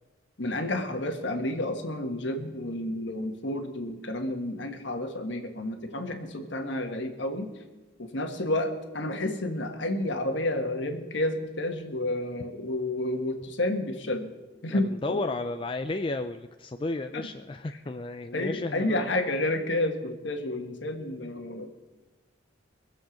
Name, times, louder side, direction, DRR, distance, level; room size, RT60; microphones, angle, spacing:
voice 1, 0.4-7.5 8.0-14.3 14.6-15.3 17.1-17.2 18.3-21.7, left 1 dB, 65° left, 5 dB, 1.5 m, -30 dB
voice 2, 14.7-19.1, left 2 dB, 25° left, 7 dB, 0.4 m, -33 dB
22.5 x 7.8 x 5.2 m, 1.2 s
head